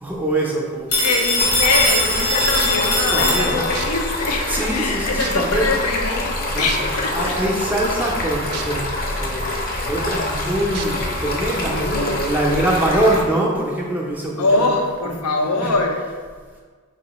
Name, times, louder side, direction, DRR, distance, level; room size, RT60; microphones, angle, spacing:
voice 1, 0.0-0.9 3.1-3.7 4.5-5.7 6.5-6.7 7.1-14.7 15.0-15.1 15.6-15.7, right 1 dB, 10° right, -3 dB, 0.5 m, -23 dB
Telephone, 0.9-3.9, left 1 dB, 70° left, 1.0 m, -21 dB
voice 2, 1.0-7.3 11.7-13.1 14.4-16.0, left 2 dB, 90° left, 2 dB, 0.6 m, -23 dB
Stream, 1.4-13.2, left 1 dB, 40° left, 0.6 m, -25 dB
sound 1, 2.6-2.8 3.7-3.9 4.6-4.7 5.2-5.6 6.7-6.8 8.5-8.6 9.1-9.2 10.7-10.9 11.6-11.7, right 8 dB, 85° right, 0.4 m, -30 dB
4.7 x 3.0 x 2.9 m, 1.5 s
head